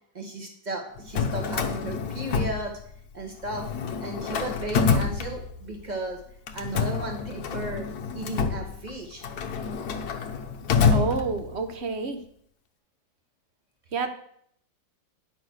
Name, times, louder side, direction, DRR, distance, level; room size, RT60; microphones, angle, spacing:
voice 1, 0.1-2.7 3.1-3.7 4.0-6.2 6.5-7.9 8.1-9.2, right 2 dB, 25° right, 2 dB, 2.0 m, -35 dB
Drawer open or close, 1.0-3.2 3.5-5.8 6.5-11.7, left 5 dB, 60° left, 1.3 m, -27 dB
voice 2, 10.9-12.2 13.9-14.1, right 4 dB, 40° right, 7 dB, 1.1 m, -29 dB
9.7 x 6.1 x 6.5 m, 0.66 s
omnidirectional pair, 2.0 m